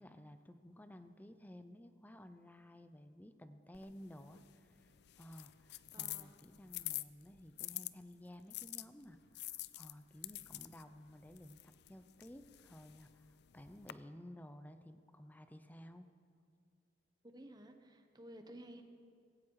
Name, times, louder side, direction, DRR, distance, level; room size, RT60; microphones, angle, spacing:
voice 1, 0.0-4.9 5.2-16.1, left 1 dB, 10° left, 10 dB, 0.7 m, -55 dB
sound 1, 3.7-7.9 8.5-13.9, left 17 dB, 65° left, 0.4 m, -48 dB
voice 2, 5.9-6.4 17.3-18.8, right 1 dB, 25° right, 6 dB, 1.2 m, -54 dB
17.0 x 16.0 x 4.8 m, 2.2 s
head